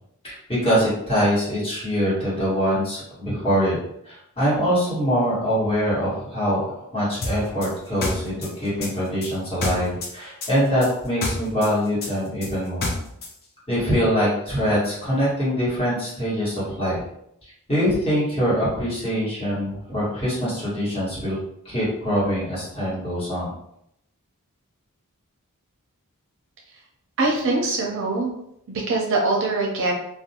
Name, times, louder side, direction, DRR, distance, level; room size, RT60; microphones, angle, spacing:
voice 1, 0.2-3.8 4.0-12.9 13.7-17.0 17.7-21.4 21.6-23.5, equal, 25° left, -9 dB, 1.4 m, -23 dB
sound 1, 7.2-10.1 10.4-13.3, left 2 dB, 45° left, 0.6 m, -28 dB
voice 2, 27.2-28.3 28.7-29.9, right 2 dB, 60° right, -1 dB, 0.5 m, -23 dB
2.5 x 2.2 x 2.7 m, 0.76 s
head